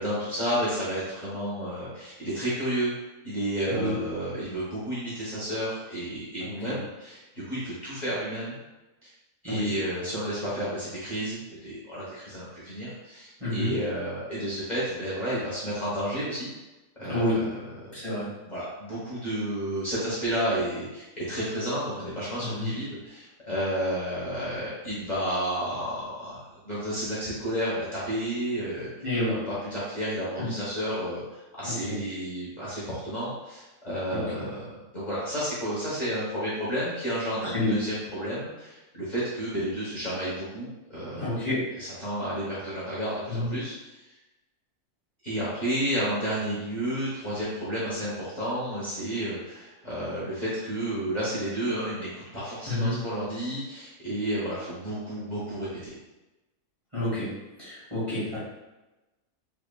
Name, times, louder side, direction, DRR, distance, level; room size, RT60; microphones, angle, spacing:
voice 1, 0.0-2.9 3.2-8.6 9.0-9.1 9.4-16.5 17.0-17.4 17.8-17.9 18.4-28.9 29.3-29.4 29.7-41.3 41.8-44.0 45.2-55.9, equal, 35° left, -10 dB, 1.1 m, -31 dB
voice 2, 6.4-6.7 9.4-9.7 13.4-13.7 17.0-17.4 17.9-18.3 22.4-22.7 29.0-29.4 30.4-30.5 31.6-32.0 34.1-34.2 37.4-37.7 41.2-41.6 43.3-43.5 52.6-52.9 56.9-57.3 57.6-58.4, left 1 dB, 20° right, -11 dB, 1.6 m, -29 dB
3.4 x 3.3 x 2.3 m, 1.0 s
omnidirectional pair, 1.4 m